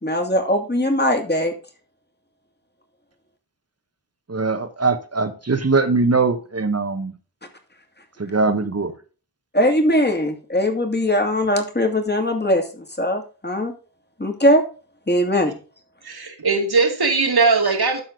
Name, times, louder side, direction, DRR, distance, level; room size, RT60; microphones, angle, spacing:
voice 1, 0.0-1.5 9.5-13.7 14.2-14.6 15.1-15.5, equal, 25° left, 4 dB, 2.5 m, -20 dB
voice 2, 4.3-7.1 8.2-8.9, right 3 dB, 40° right, 10 dB, 1.3 m, -21 dB
voice 3, 16.0-18.0, right 4 dB, 70° right, 4 dB, 2.2 m, -19 dB
12.0 x 4.4 x 3.9 m, 0.35 s
cardioid pair, 40°, 40 cm